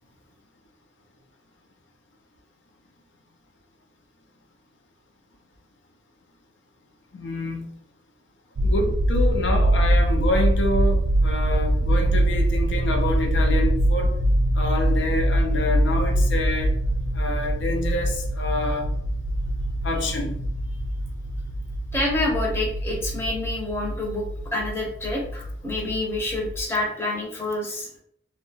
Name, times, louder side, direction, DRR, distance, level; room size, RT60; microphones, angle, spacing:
voice 1, 7.1-7.7 8.6-14.1 14.5-16.7 17.1-18.9 19.8-20.4, left 2 dB, 85° left, 3 dB, 0.5 m, -27 dB
sound 1, 8.6-26.6, right 1 dB, 65° right, 0.4 m, -23 dB
voice 2, 21.9-24.2 24.5-27.9, left 2 dB, 15° left, -2 dB, 0.5 m, -27 dB
2.7 x 2.2 x 2.7 m, 0.68 s
head